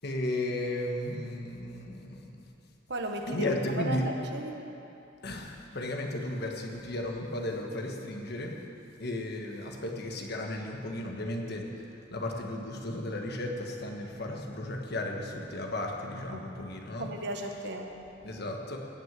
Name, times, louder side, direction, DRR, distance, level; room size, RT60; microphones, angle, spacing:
voice 1, 0.0-2.4 3.3-4.0 5.2-8.5 9.0-11.6 12.1-17.1 18.2-18.8, left 1 dB, 60° left, 1 dB, 1.4 m, -34 dB
voice 2, 2.9-3.5 3.8-4.5 16.3-16.5 17.0-18.2, right 1 dB, 65° right, 3 dB, 1.2 m, -36 dB
17.0 x 6.3 x 7.5 m, 2.8 s
head